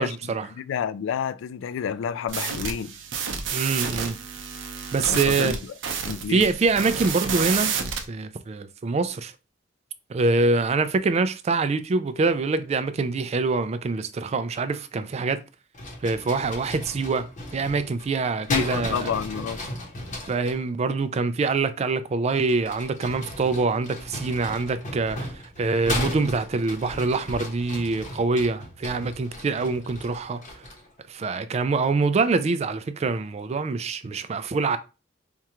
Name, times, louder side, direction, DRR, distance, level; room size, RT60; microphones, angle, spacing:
voice 1, 0.0-0.5 3.5-4.2 4.9-5.6 6.3-7.7 8.1-9.3 10.1-15.4 16.0-17.3 17.5-19.1 20.3-30.6 31.1-34.8, right 3 dB, 35° right, 0.3 m, -25 dB
voice 2, 0.6-2.9 5.0-5.6 6.1-6.5 18.5-19.6, left 7 dB, 85° left, 0.3 m, -29 dB
sound 1, 2.3-8.0, right 6 dB, 75° right, 0.6 m, -30 dB
sound 2, 15.7-20.6 22.3-30.9, left 1 dB, 40° left, 0.9 m, -35 dB
4.5 x 2.4 x 2.9 m
head